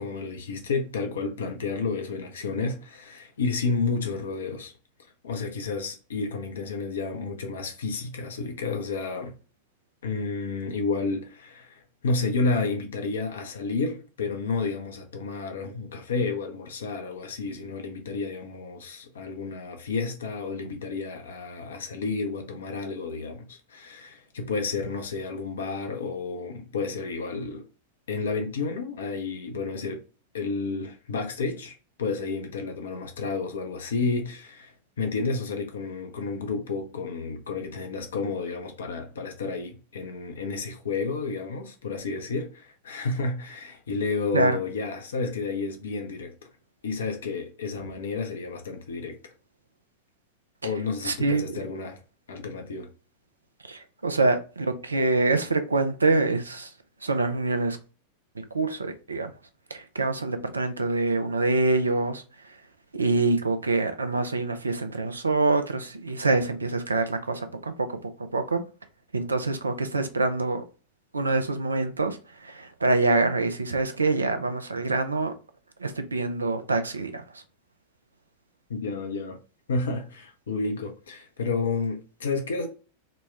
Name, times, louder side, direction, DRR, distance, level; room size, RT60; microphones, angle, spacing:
voice 1, 0.0-4.7 5.2-9.3 10.0-27.6 28.1-30.0 30.3-46.3 46.8-49.3 50.6-52.0 52.3-52.9 78.7-79.4 79.7-82.7, left 4 dB, 65° left, 0.6 m, -31 dB
voice 2, 51.0-51.6 53.7-56.7 57.0-57.8 58.4-59.3 59.7-62.2 62.9-68.6 69.1-70.6 71.1-75.3 75.8-77.2, right 3 dB, 75° right, 0.5 m, -25 dB
3.9 x 2.2 x 3.3 m
figure-of-eight pair, 90°, 0 cm